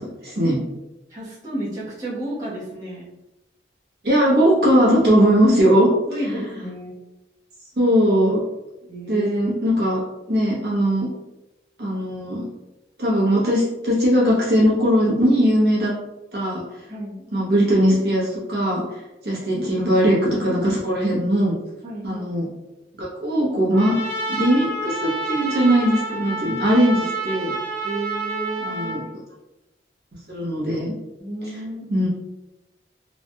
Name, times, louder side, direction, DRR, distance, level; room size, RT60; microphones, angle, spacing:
voice 1, 0.2-0.6 4.0-5.9 6.3-6.5 7.8-8.4 9.1-10.0 10.3-11.1 11.8-12.5 13.0-15.9 16.3-16.6 17.3-18.8 19.2-21.5 22.0-22.5 23.0-23.9 24.3-27.5 28.6-29.0 30.3-30.9 31.9-32.1, equal, 55° right, -6 dB, 1.0 m, -19 dB
voice 2, 1.1-3.0 6.1-6.9 8.9-9.3 16.9-17.3 19.6-19.7 21.8-22.2 27.8-29.0 31.2-32.1, right 1 dB, 20° right, -10 dB, 1.0 m, -32 dB
Trumpet, 23.7-29.0, right 2 dB, 10° left, 0.8 m, -28 dB
3.2 x 2.8 x 2.2 m, 0.96 s
head